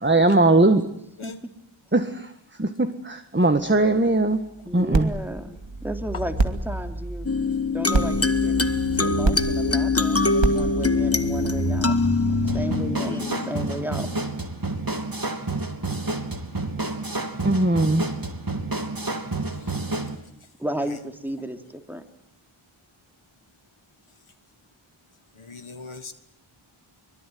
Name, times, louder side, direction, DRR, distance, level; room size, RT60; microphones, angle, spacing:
voice 1, 0.0-0.8 1.9-2.3 2.6-4.4 4.7-5.1 17.4-18.1, right 2 dB, 20° right, 8 dB, 1.7 m, -20 dB
voice 2, 4.6-7.3 7.7-11.9 12.4-14.1 20.6-22.0, right 1 dB, 5° right, 6 dB, 3.0 m, -34 dB
sound 1, 4.9-12.7, right 2 dB, 60° right, 2.7 m, -28 dB
sound 2, 7.3-14.2, left 3 dB, 30° left, 1.4 m, -24 dB
sound 3, 12.5-20.2, right 2 dB, 45° right, 3.2 m, -30 dB
voice 3, 13.0-13.5 19.6-19.7 25.4-26.1, left 4 dB, 80° left, 8 dB, 1.7 m, -40 dB
24.0 x 23.5 x 9.4 m, 0.72 s
wide cardioid pair, 50°, 49 cm